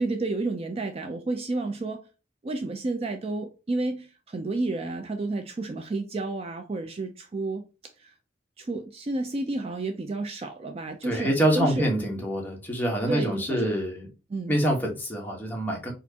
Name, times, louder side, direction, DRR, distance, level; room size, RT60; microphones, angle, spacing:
voice 1, 0.0-2.0 2.4-7.6 8.0-8.1 8.6-11.9 13.1-13.7 14.3-14.5, right 2 dB, 35° right, 0.4 m, -31 dB
voice 2, 11.0-14.1 14.5-15.9, right 1 dB, 10° left, 1.1 m, -26 dB
4.3 x 2.5 x 2.8 m
head